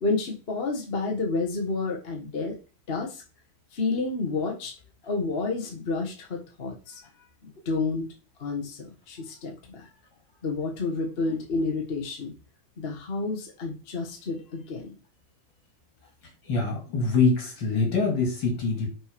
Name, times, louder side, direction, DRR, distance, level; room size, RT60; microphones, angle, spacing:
voice 1, 0.0-2.6 2.9-3.2 3.7-4.7 5.0-7.0 7.4-8.1 8.4-9.9 10.4-12.3 12.8-14.9, left 3 dB, 35° left, 1 dB, 1.2 m, -30 dB
voice 2, 16.5-18.9, left 4 dB, 65° left, 2 dB, 2.6 m, -24 dB
6.2 x 4.5 x 5.1 m, 0.33 s
omnidirectional pair, 2.2 m